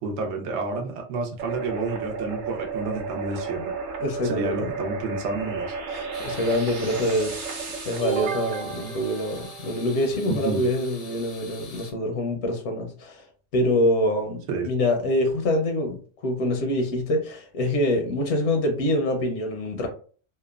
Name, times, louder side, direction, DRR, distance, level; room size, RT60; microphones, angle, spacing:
voice 1, 0.0-3.7 4.2-5.7 10.2-10.7 14.5-14.7, right 3 dB, 80° right, 0.9 m, -30 dB
sound 1, 1.4-10.0, right 5 dB, 55° right, 0.6 m, -32 dB
voice 2, 4.0-4.7 5.9-7.6 7.8-13.2 13.5-16.0 16.2-19.9, left 1 dB, 85° left, 0.9 m, -25 dB
sound 2, 6.1-11.9, left 4 dB, 50° left, 0.4 m, -45 dB
2.9 x 2.1 x 2.3 m
omnidirectional pair, 1.1 m